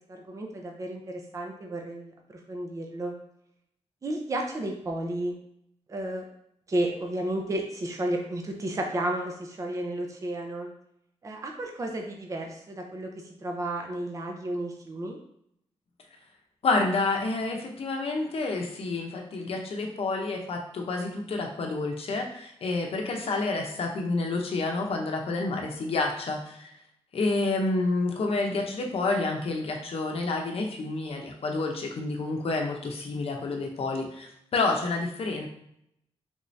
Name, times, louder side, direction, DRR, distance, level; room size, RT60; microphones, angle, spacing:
voice 1, 0.1-3.1 4.0-5.3 5.9-6.2 6.7-10.7 11.2-13.1 13.4-15.2 33.6-33.7, right 1 dB, 30° right, 2 dB, 0.5 m, -32 dB
voice 2, 16.6-26.7 27.1-35.5, left 3 dB, 60° left, 1 dB, 0.7 m, -29 dB
3.5 x 2.7 x 3.2 m, 0.73 s
wide cardioid pair, 110°, 11 cm